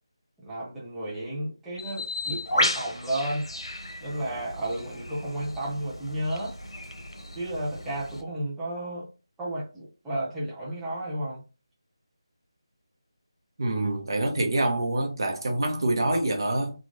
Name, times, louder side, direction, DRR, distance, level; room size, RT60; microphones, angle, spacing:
voice 1, 0.4-3.5 4.0-6.5 7.3-9.1 9.4-11.4, right 1 dB, 5° right, 0.6 m, -32 dB
Bird, 1.8-8.2, left 1 dB, 90° left, 0.8 m, -33 dB
voice 2, 13.6-16.7, right 2 dB, 55° right, 0.8 m, -26 dB
3.0 x 2.4 x 2.4 m
figure-of-eight pair, 165°, 3 cm